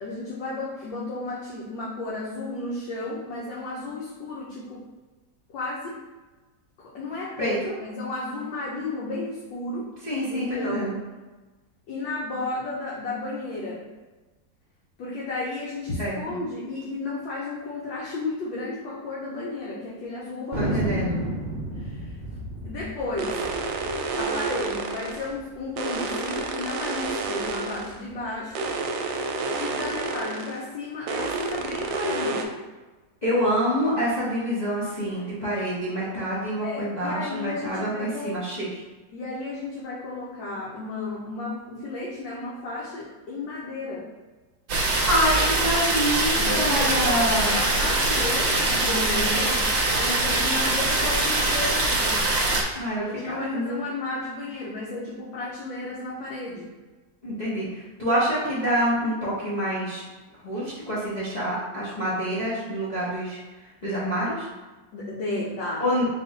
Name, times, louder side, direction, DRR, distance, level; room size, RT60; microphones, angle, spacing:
voice 1, 0.0-4.8 5.5-6.0 6.8-9.9 10.2-11.0 11.9-13.8 15.0-20.8 21.8-22.1 22.6-23.4 24.2-28.7 29.6-32.5 35.1-35.3 36.6-38.4 39.1-44.1 46.4-49.7 50.0-52.2 53.0-56.7 64.9-65.8, left 2 dB, 80° left, -6 dB, 1.4 m, -33 dB
voice 2, 7.4-7.7 10.0-10.9 16.0-16.4 20.6-21.3 33.2-38.7 44.7-47.6 52.7-53.8 57.2-60.0 60.4-63.4 63.8-64.5 65.8-66.1, equal, 40° left, -9 dB, 0.6 m, -26 dB
Thunder, 20.5-25.3 25.6-25.7 25.9-26.5 26.9-28.1, right 1 dB, 45° right, 0.9 m, -32 dB
sound 1, 23.2-25.3 25.8-28.0 28.6-30.6 31.1-32.4, right 3 dB, 85° right, 1.3 m, -29 dB
sound 2, 44.7-52.6, right 2 dB, 70° right, 1.3 m, -23 dB
4.0 x 2.4 x 3.9 m, 1.2 s
omnidirectional pair, 2.0 m